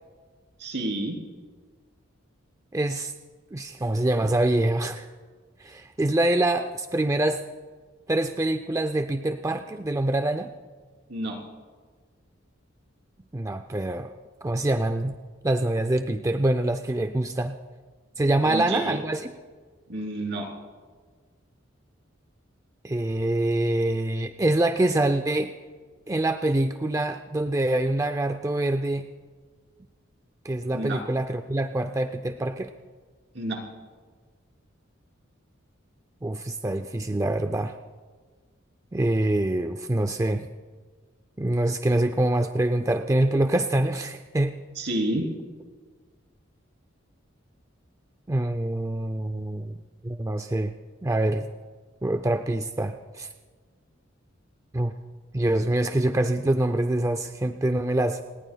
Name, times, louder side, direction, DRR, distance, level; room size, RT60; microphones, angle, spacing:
voice 1, 0.6-1.2 11.1-11.4 18.4-19.0 19.9-20.5 30.7-31.0 33.3-33.6 44.7-45.2, right 1 dB, 60° right, 1 dB, 3.4 m, -29 dB
voice 2, 2.7-3.1 3.5-5.1 5.6-7.4 8.1-10.5 13.3-15.1 15.4-17.6 18.2-19.3 22.8-25.5 26.1-29.1 30.4-32.7 36.2-37.7 38.9-40.5 41.4-44.6 48.3-49.8 50.0-50.7 51.0-51.5 52.0-53.3 54.7-54.9 55.3-58.2, right 1 dB, 15° right, 7 dB, 0.4 m, -25 dB
28.5 x 19.5 x 2.3 m, 1.5 s
head